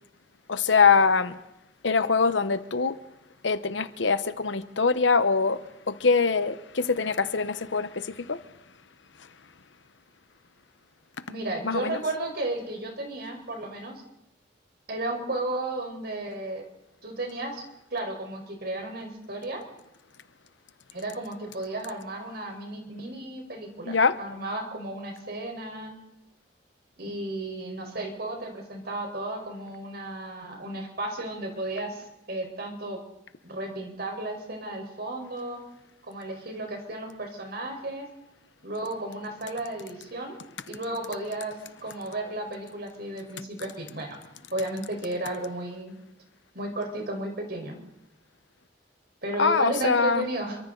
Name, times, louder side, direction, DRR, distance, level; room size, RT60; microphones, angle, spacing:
voice 1, 0.5-1.4 1.8-3.0 3.4-8.4 11.6-12.0 23.9-24.2 49.4-50.3, left 5 dB, 85° left, 1.0 m, -23 dB
voice 2, 11.3-14.0 14.9-16.6 17.0-17.6 17.9-19.6 20.9-26.0 27.0-33.0 33.4-35.6 36.0-38.1 38.6-40.4 40.7-41.5 41.8-44.2 44.5-45.9 46.5-47.8 49.2-50.6, right 2 dB, 60° right, 4.6 m, -33 dB
27.5 x 24.0 x 4.0 m
head